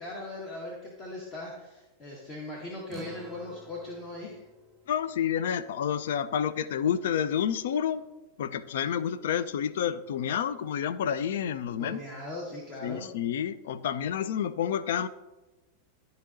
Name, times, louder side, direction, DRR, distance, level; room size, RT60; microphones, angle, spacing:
voice 1, 0.0-4.4 11.8-13.1, left 2 dB, 30° left, -2 dB, 1.3 m, -39 dB
sound 1, 2.9-7.6, right 3 dB, 15° right, 0.8 m, -52 dB
voice 2, 4.9-8.0 8.4-12.0 12.8-15.1, left 8 dB, 55° left, 13 dB, 0.3 m, -29 dB
12.0 x 3.9 x 2.6 m, 1.1 s
figure-of-eight pair, 90°, 0 cm